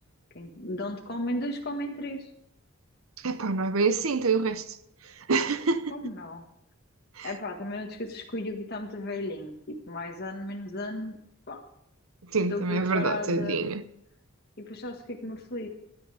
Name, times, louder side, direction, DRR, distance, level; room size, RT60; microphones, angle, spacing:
voice 1, 0.3-2.3 5.9-6.4 7.2-11.2 11.5-11.6 12.5-13.7 14.6-15.7, left 1 dB, 50° left, 1.6 m, -35 dB
voice 2, 3.2-4.6 5.3-5.9 7.2-7.3 12.3-13.8, right 4 dB, 85° right, 0.8 m, -26 dB
15.5 x 10.5 x 5.0 m
head